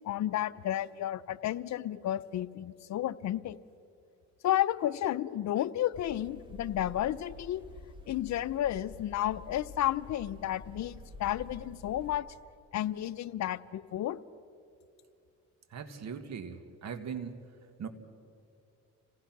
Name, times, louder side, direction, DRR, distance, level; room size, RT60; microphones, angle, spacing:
voice 1, 0.1-3.6 4.4-7.6 8.1-12.2 12.7-14.2, left 12 dB, 65° left, 16 dB, 0.7 m, -32 dB
sound 1, 5.9-12.2, left 2 dB, 15° right, 3.6 m, -49 dB
voice 2, 15.7-17.4 17.8-17.9, right 6 dB, 60° right, 8 dB, 1.9 m, -40 dB
27.5 x 18.0 x 6.1 m, 2.5 s
cardioid pair, 90°, 30 cm